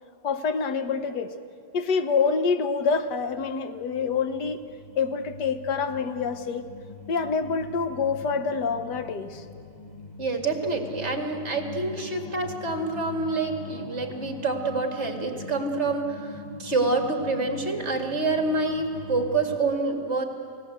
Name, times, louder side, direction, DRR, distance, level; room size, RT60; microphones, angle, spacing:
voice 1, 0.2-1.4 1.7-4.6 5.0-6.7 7.1-9.4, left 5 dB, 80° left, 8 dB, 1.7 m, -26 dB
sound 1, 2.9-19.6, left 2 dB, 25° left, 2.3 m, -42 dB
voice 2, 10.2-20.2, right 3 dB, 40° right, 3 dB, 2.4 m, -27 dB
29.0 x 17.0 x 8.0 m, 2.4 s
omnidirectional pair, 1.8 m